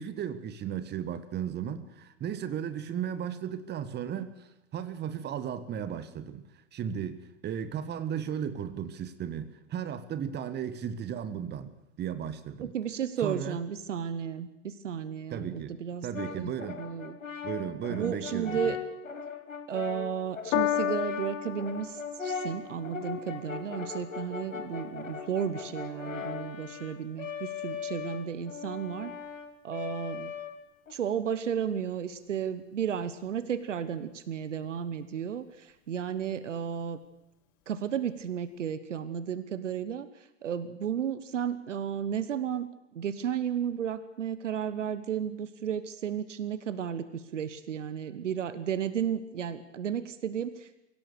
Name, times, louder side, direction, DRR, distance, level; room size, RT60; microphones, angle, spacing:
voice 1, 0.0-6.4 6.7-12.7 13.2-13.6 15.3-15.7 16.0-16.8 17.4-18.8, right 8 dB, 25° right, 1.6 m, -35 dB
voice 2, 12.6-17.2 17.9-18.8 19.7-29.1 29.6-30.3 30.9-37.0 37.7-40.1 40.4-42.7 42.9-50.8, right 8 dB, 70° right, 1.3 m, -33 dB
Brass instrument, 16.1-30.9, left 6 dB, 80° left, 1.9 m, -39 dB
Piano, 20.5-27.1 27.9-28.0, left 11 dB, 40° left, 1.5 m, -35 dB
24.0 x 17.0 x 6.8 m
figure-of-eight pair, 90°, 39 cm